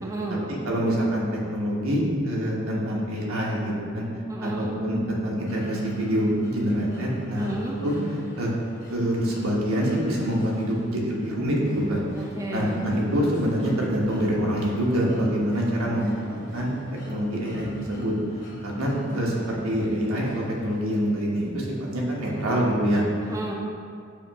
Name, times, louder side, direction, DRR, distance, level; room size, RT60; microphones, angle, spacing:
voice 1, 0.0-0.5 4.3-4.7 7.4-7.8 12.2-12.7 19.1-19.8 22.3-22.7 23.2-23.5, right 2 dB, 15° right, -2 dB, 0.4 m, -33 dB
voice 2, 0.6-4.1 4.4-7.5 7.8-7.9 8.4-8.5 8.9-12.0 12.5-16.7 17.1-18.1 18.6-21.7 21.9-23.0, equal, 90° right, -3 dB, 1.3 m, -25 dB
sound 1, 5.5-21.4, right 2 dB, 40° left, 1.0 m, -41 dB
7.1 x 3.0 x 4.7 m, 2.2 s
head